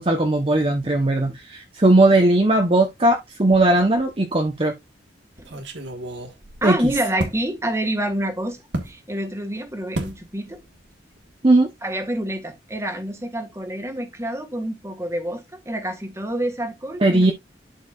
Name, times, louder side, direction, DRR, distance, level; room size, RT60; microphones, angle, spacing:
voice 1, 0.0-4.7 6.6-6.8 11.4-11.7 17.0-17.3, right 2 dB, 30° right, 1.0 m, -18 dB
sound 1, 3.5-4.1 4.5-4.6 5.4-7.4 8.7-9.0 9.9-10.2 10.5-10.9 11.1-11.3, right 1 dB, 90° right, 1.6 m, -32 dB
voice 2, 6.6-8.6 8.8-10.6 11.8-17.3, right 1 dB, 15° right, 1.7 m, -27 dB
11.5 x 4.7 x 2.5 m
head